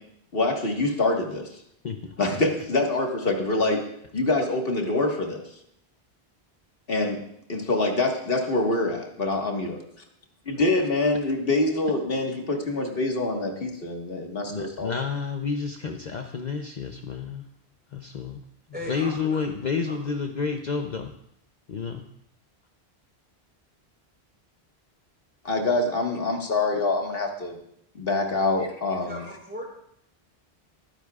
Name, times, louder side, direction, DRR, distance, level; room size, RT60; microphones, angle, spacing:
voice 1, 0.3-1.5 2.2-3.9 4.1-5.4 6.9-7.2 7.5-9.8 10.4-14.9 25.4-27.5 27.9-29.2, left 2 dB, 65° left, 2 dB, 1.9 m, -25 dB
voice 2, 14.5-17.5 17.9-18.4 18.9-21.1 21.7-22.1, left 5 dB, 50° left, 4 dB, 0.8 m, -30 dB
voice 3, 18.7-19.5 19.8-20.0 29.0-29.6, equal, 10° right, -2 dB, 4.0 m, -37 dB
21.0 x 9.9 x 2.4 m, 0.74 s
omnidirectional pair, 1.1 m